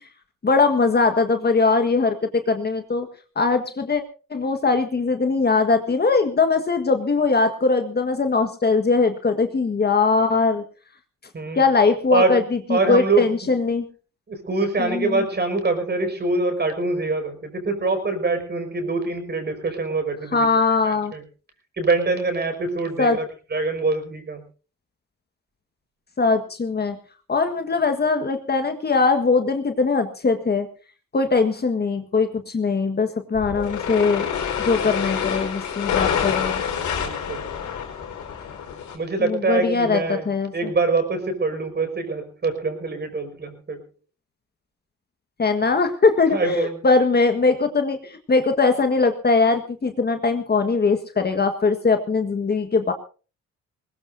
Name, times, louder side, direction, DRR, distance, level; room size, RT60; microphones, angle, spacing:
voice 1, 0.4-3.1 3.3-4.0 4.3-10.6 11.5-12.4 12.7-13.9 14.8-15.2 20.3-21.1 23.0-23.2 26.2-27.0 27.3-30.7 31.1-34.3 34.6-36.6 39.2-40.5 45.4-52.9, left 4 dB, 35° left, 6 dB, 1.7 m, -21 dB
voice 2, 12.1-12.4 12.7-13.3 14.3-20.5 20.8-21.2 21.8-23.2 23.5-24.4 34.8-35.0 37.0-37.5 38.9-43.8 46.3-46.8, right 3 dB, 35° right, 7 dB, 5.5 m, -24 dB
sound 1, 33.3-39.0, left 7 dB, 75° left, 4.8 m, -27 dB
21.0 x 19.0 x 2.7 m, 0.36 s
cardioid pair, 90°, 30 cm